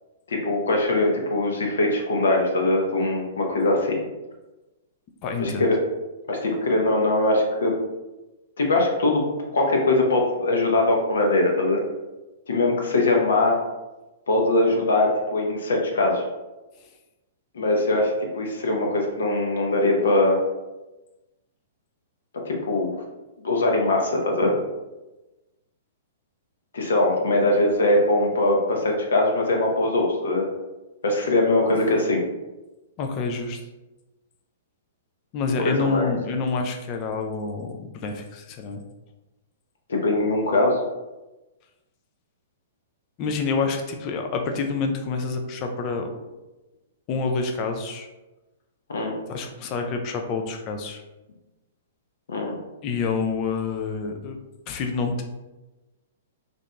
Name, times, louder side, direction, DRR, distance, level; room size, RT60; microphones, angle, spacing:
voice 1, 0.3-4.0 5.4-5.8 6.3-7.7 8.6-11.8 12.5-13.6 14.3-16.2 17.5-20.4 22.4-22.9 23.4-24.6 26.7-30.5 31.0-32.2 35.6-36.1 39.9-40.8 48.9-49.1 52.3-52.5, left 2 dB, 70° left, 0 dB, 0.7 m, -22 dB
voice 2, 5.2-5.7 33.0-33.6 35.3-38.8 43.2-46.1 47.1-48.1 49.3-51.0 52.8-54.4 54.7-55.2, left 4 dB, 35° left, 4 dB, 0.5 m, -27 dB
2.8 x 2.6 x 3.3 m, 1.1 s
figure-of-eight pair, 110°, 0 cm